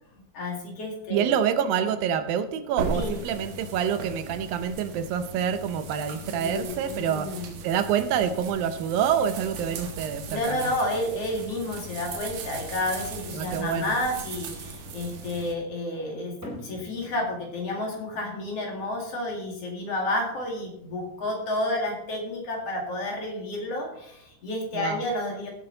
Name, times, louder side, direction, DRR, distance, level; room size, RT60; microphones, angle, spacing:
voice 1, 0.3-1.5 2.9-3.2 6.2-7.5 10.3-16.3 16.6-25.5, left 1 dB, 45° left, 1 dB, 2.7 m, -30 dB
voice 2, 1.1-10.7 13.3-14.0 24.7-25.0, right 8 dB, 75° right, 10 dB, 2.3 m, -27 dB
sound 1, 2.8-15.5, right 4 dB, 60° right, 2.0 m, -38 dB
sound 2, 16.4-23.1, left 1 dB, 5° left, 3.6 m, -48 dB
17.0 x 7.7 x 4.0 m, 0.75 s
omnidirectional pair, 4.6 m